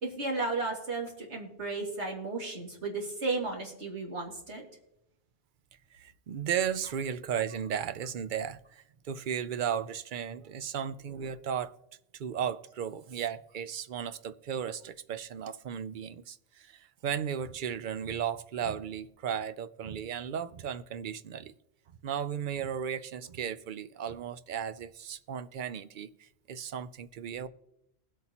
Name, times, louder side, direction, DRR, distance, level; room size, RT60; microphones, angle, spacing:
voice 1, 0.0-4.7, right 3 dB, 90° right, 2.6 m, -34 dB
voice 2, 5.9-11.7 12.1-21.5 22.0-27.5, right 8 dB, 55° right, 0.6 m, -35 dB
20.5 x 8.2 x 2.9 m
omnidirectional pair, 1.1 m